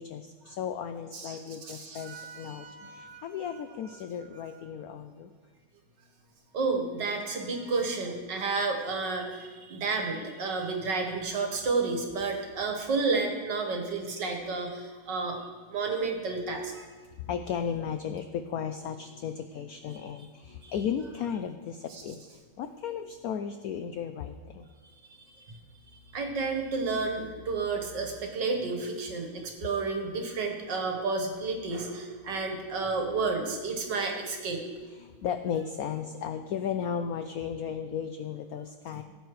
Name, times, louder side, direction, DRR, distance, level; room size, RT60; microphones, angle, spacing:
voice 1, 0.0-5.3 17.2-22.2 22.6-24.7 34.9-39.0, left 8 dB, 85° left, 8 dB, 0.8 m, -35 dB
voice 2, 1.1-3.2 6.5-15.4 15.7-16.9 20.6-20.7 21.9-22.0 26.1-34.6, right 4 dB, 65° right, 2 dB, 2.0 m, -31 dB
17.0 x 8.0 x 3.2 m, 1.5 s
omnidirectional pair, 2.1 m